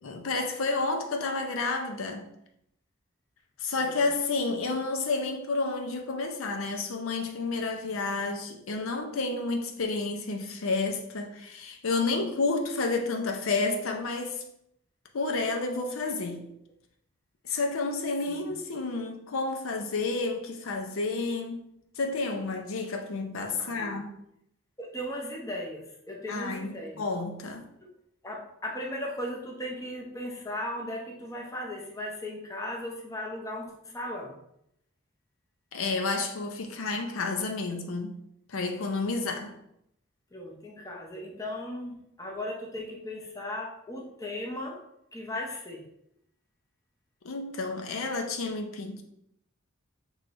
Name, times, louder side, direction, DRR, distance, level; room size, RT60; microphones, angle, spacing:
voice 1, 0.0-2.2 3.6-14.4 15.1-16.5 17.4-21.6 22.0-24.1 26.3-27.7 35.7-38.2 38.5-39.5 47.2-49.0, left 3 dB, 75° left, 0.6 m, -30 dB
voice 2, 23.6-24.0 24.8-27.0 28.2-34.4 40.3-44.8 45.1-45.8, left 1 dB, 15° left, 0.7 m, -37 dB
6.3 x 3.1 x 2.6 m
head